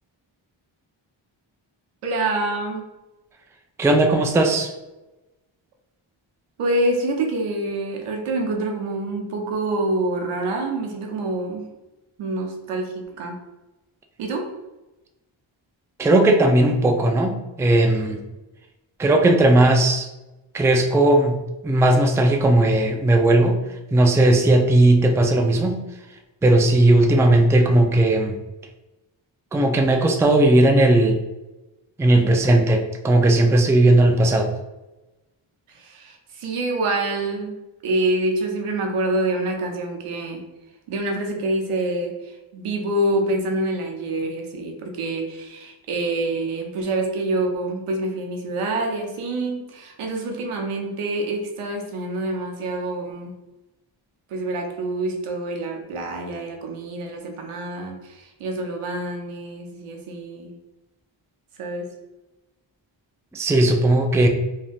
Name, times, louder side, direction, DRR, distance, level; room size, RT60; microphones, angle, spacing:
voice 1, 2.0-2.9 6.6-11.7 12.2-13.4 14.2-14.5 32.2-32.3 35.7-37.6 37.8-40.4 40.9-53.3 54.3-60.6 61.6-61.9, right 2 dB, 85° right, 2 dB, 0.7 m, -26 dB
voice 2, 3.8-4.7 16.0-18.2 19.0-20.1 20.5-23.6 23.9-25.8 26.4-28.4 29.5-31.2 32.0-34.5 63.3-64.3, right 1 dB, 5° right, 4 dB, 0.3 m, -17 dB
3.2 x 2.6 x 2.3 m, 1.0 s
cardioid pair, 45°, 50 cm